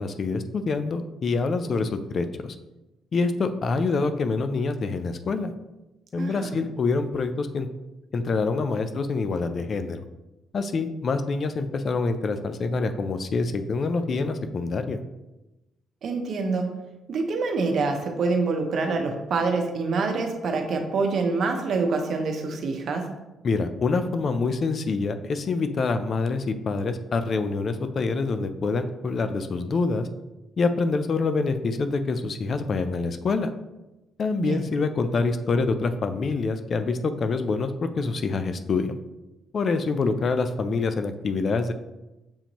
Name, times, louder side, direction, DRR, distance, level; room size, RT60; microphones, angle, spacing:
voice 1, 0.0-2.6 3.1-5.5 6.1-7.7 8.1-10.0 10.5-15.0 23.4-30.1 30.6-33.5 34.2-39.0 39.5-41.7, left 4 dB, 50° left, 9 dB, 0.4 m, -26 dB
voice 2, 6.2-6.5 16.0-16.7 17.1-23.1 34.4-34.7, right 4 dB, 65° right, 4 dB, 0.8 m, -26 dB
7.0 x 2.5 x 2.9 m, 1.0 s
cardioid pair, 90°, 0 cm